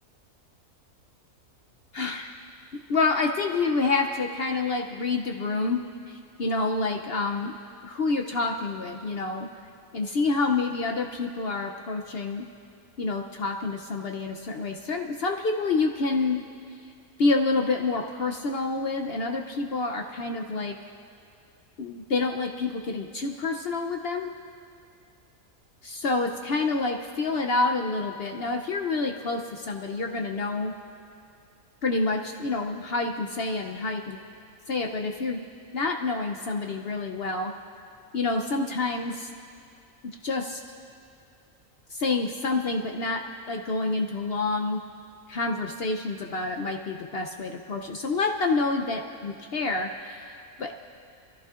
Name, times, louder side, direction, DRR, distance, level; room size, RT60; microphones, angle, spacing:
voice 1, 1.9-2.3 2.9-5.8 6.1-7.5 7.8-9.5 9.9-12.5 13.0-16.4 17.2-20.8 21.8-24.3 25.8-30.7 31.8-34.2 34.7-35.4 35.7-37.5 38.1-39.3 40.2-40.6 41.9-43.2 43.5-44.8 45.3-50.7, left 3 dB, 55° left, 3 dB, 0.7 m, -28 dB
25.5 x 14.5 x 2.4 m, 2.5 s
omnidirectional pair, 1.5 m